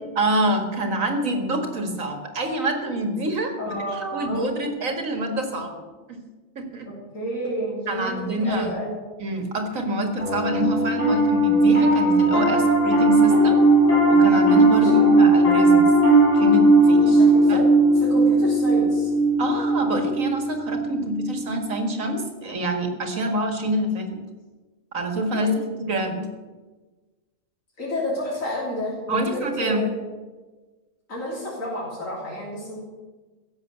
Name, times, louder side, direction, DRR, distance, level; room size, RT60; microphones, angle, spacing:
voice 1, 0.2-6.2 6.6-6.9 7.9-8.7 9.2-13.6 14.1-15.9 16.3-17.2 17.5-17.6 19.4-24.2 24.9-25.5 25.9-26.3 29.1-29.9, right 1 dB, 85° right, 4 dB, 2.4 m, -26 dB
voice 2, 3.6-4.5 6.9-9.0 14.8-15.0 16.9-17.6 18.0-19.1 25.4-25.6 27.8-29.9 31.1-32.8, equal, 85° left, -5 dB, 3.6 m, -30 dB
Piano, 10.2-21.7, right 2 dB, 70° left, 4.7 m, -18 dB
16.5 x 7.7 x 8.1 m, 1.3 s
omnidirectional pair, 1.3 m